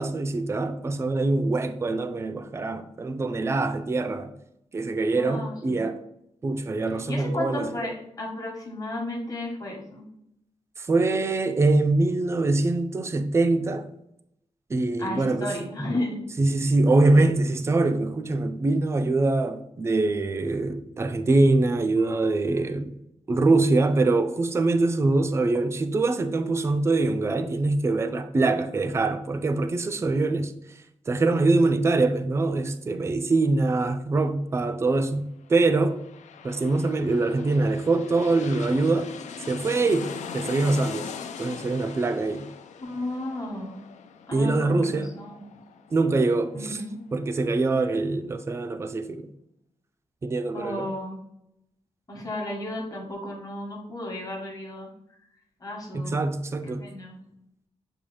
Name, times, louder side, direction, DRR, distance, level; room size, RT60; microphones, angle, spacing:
voice 1, 0.0-4.3 4.7-6.0 6.4-7.7 10.8-13.9 14.7-15.6 16.4-22.9 23.3-30.5 31.1-36.0 36.4-39.1 39.5-41.1 41.4-42.5 44.3-45.1 45.9-46.8 47.1-49.3 50.2-50.9 55.9-56.9, right 2 dB, 25° right, 0.3 m, -24 dB
voice 2, 5.2-5.8 7.1-10.0 15.0-16.2 17.0-17.3 42.8-43.8 44.3-45.4 46.5-47.0 50.5-51.2 52.1-54.9 55.6-56.1 56.8-57.2, left 1 dB, 30° left, 1.1 m, -33 dB
sound 1, 35.6-47.0 47.4-47.5, left 6 dB, 85° left, 0.4 m, -41 dB
6.9 x 2.3 x 3.1 m
wide cardioid pair, 135°, 12 cm